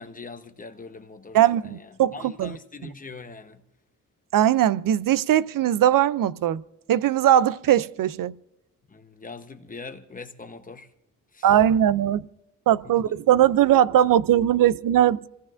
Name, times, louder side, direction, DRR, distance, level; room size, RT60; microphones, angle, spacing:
voice 1, 0.0-3.6 8.9-10.9 11.3-11.6 12.8-13.1, left 4 dB, 25° left, 0.9 m, -42 dB
voice 2, 1.3-2.6 4.3-6.6 6.9-8.3 11.4-12.2 12.7-15.3, right 11 dB, 75° right, 0.5 m, -20 dB
27.5 x 17.0 x 2.5 m
wide cardioid pair, 150°, 33 cm